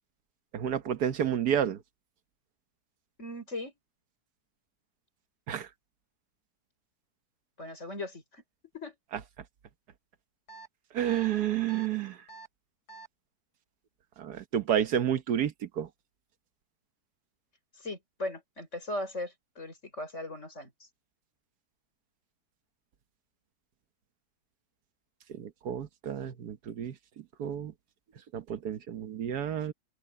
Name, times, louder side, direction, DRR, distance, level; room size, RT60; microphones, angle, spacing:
voice 1, 0.5-1.8 5.5-5.7 10.9-12.2 14.2-15.9 25.3-26.9 27.4-27.7 28.3-29.7, right 9 dB, 80° right, 1.6 m, -30 dB
voice 2, 3.2-3.7 7.6-8.4 8.7-9.0 17.8-20.7, left 2 dB, 50° left, 6.1 m, -38 dB
sound 1, 10.5-10.7 11.1-11.3 11.7-11.9 12.3-12.5 12.9-13.1, right 3 dB, 90° left, 8.1 m, -47 dB
open air
omnidirectional pair, 1.6 m